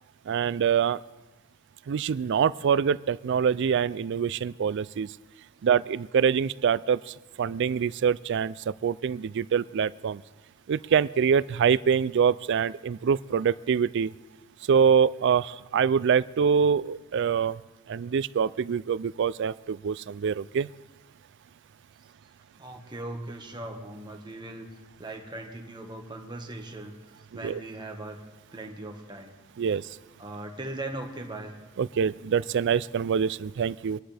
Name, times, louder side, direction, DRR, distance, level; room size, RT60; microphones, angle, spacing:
voice 1, 0.3-1.0 1.9-5.1 5.6-10.2 10.7-14.1 14.7-17.6 17.9-20.7 27.4-27.6 29.6-29.9 31.8-34.0, right 7 dB, 60° right, 18 dB, 0.4 m, -25 dB
voice 2, 22.6-28.2 28.5-29.3 30.2-31.5, right 2 dB, 20° right, 2 dB, 1.5 m, -39 dB
24.0 x 11.5 x 3.4 m, 1.2 s
head